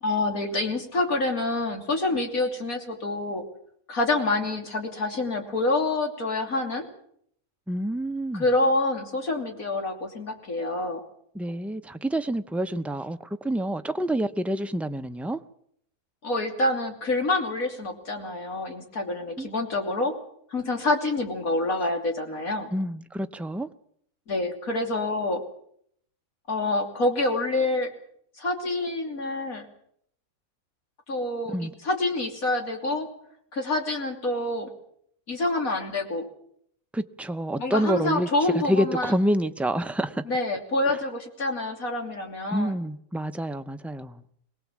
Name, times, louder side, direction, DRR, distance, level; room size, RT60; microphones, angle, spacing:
voice 1, 0.0-3.4 3.9-6.8 8.3-11.0 16.2-20.1 20.5-22.7 24.3-25.4 26.5-27.9 28.4-29.7 31.1-33.1 33.5-34.7 35.3-36.3 37.6-39.1 40.3-42.8, left 2 dB, 85° left, 3.5 m, -27 dB
voice 2, 7.7-8.4 11.3-15.4 19.4-19.5 22.7-23.7 31.5-31.7 36.9-40.2 40.9-41.0 42.5-44.2, equal, ahead, 0.3 m, -28 dB
23.0 x 19.0 x 7.4 m
omnidirectional pair, 1.5 m